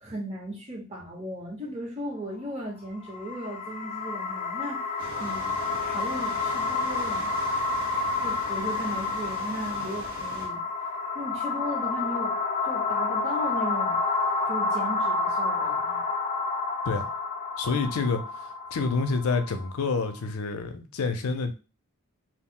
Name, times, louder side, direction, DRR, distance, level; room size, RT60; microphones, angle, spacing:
voice 1, 0.0-4.8 5.2-7.3 8.2-10.6 11.1-12.4 12.6-14.0 14.5-16.0, right 1 dB, 30° right, 1.0 m, -36 dB
sound 1, 3.0-20.1, left 3 dB, 35° left, 0.4 m, -29 dB
sound 2, 5.0-10.5, right 2 dB, 70° right, 0.7 m, -42 dB
voice 2, 17.6-21.5, left 4 dB, 85° left, 0.5 m, -28 dB
2.4 x 2.1 x 3.6 m
head